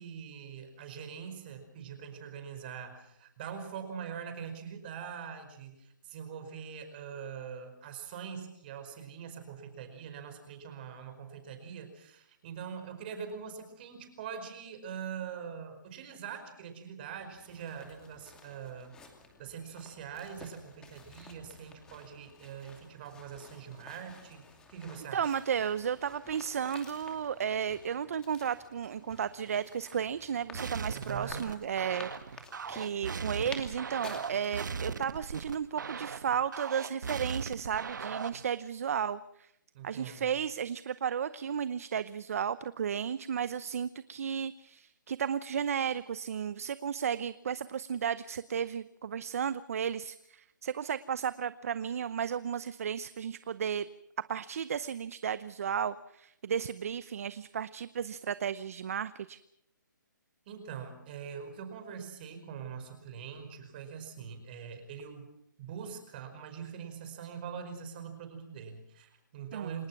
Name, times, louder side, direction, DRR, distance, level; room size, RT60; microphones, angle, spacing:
voice 1, 0.0-19.0 19.4-24.4 24.7-25.3 30.9-31.5 39.7-40.3 60.4-65.3 65.6-69.9, right 7 dB, 30° right, 7 dB, 5.0 m, -43 dB
sound 1, 17.1-35.7, left 3 dB, 5° left, 2.6 m, -52 dB
voice 2, 25.1-39.5 39.8-53.9 54.3-59.4 69.5-69.8, right 8 dB, 45° right, 15 dB, 0.8 m, -34 dB
sound 2, 30.5-38.5, right 5 dB, 70° right, 1.2 m, -38 dB
29.0 x 18.5 x 6.0 m, 0.78 s
hypercardioid pair, 165°, 11 cm